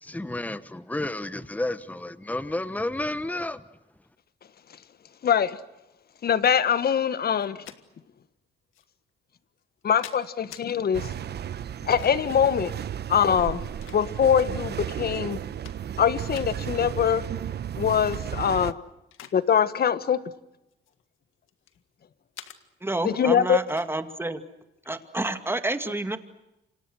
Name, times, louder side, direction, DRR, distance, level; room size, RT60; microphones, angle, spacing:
voice 1, 0.0-3.6, left 2 dB, 10° left, 1.2 m, -31 dB
voice 2, 5.2-5.6 6.2-7.6 9.8-11.1 11.8-12.7 13.1-13.6 13.9-15.4 16.0-17.2 17.8-18.7 19.3-20.2 23.0-23.6, left 8 dB, 50° left, 1.4 m, -23 dB
sound 1, 7.4-7.8 8.7-8.8 9.6-10.7 11.7-12.4 13.3-14.4 14.9-15.0 15.4-16.0 16.3-16.5 17.9-18.2 18.6-19.4 19.7-19.9 20.7-21.8 22.3-22.6 23.7-23.9, left 11 dB, 85° left, 1.9 m, -47 dB
sound 2, 10.9-18.7, right 9 dB, 55° right, 1.2 m, -34 dB
voice 3, 22.8-24.4 24.9-26.2, right 2 dB, 10° right, 2.4 m, -29 dB
29.0 x 26.5 x 6.4 m
cardioid pair, 90°, 20 cm